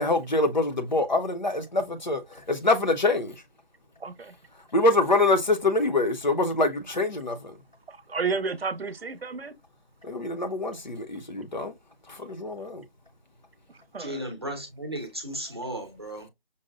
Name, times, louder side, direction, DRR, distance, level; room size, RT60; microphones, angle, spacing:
voice 1, 0.0-2.2 2.5-3.3 4.7-7.5 10.0-11.7 12.1-12.8, left 2 dB, 50° left, 0.6 m, -25 dB
voice 2, 4.0-4.4 7.9-9.5 13.7-14.3, right 4 dB, 90° right, 0.7 m, -32 dB
voice 3, 14.0-16.3, right 1 dB, 25° right, 0.7 m, -35 dB
5.3 x 2.1 x 2.3 m
figure-of-eight pair, 170°, 29 cm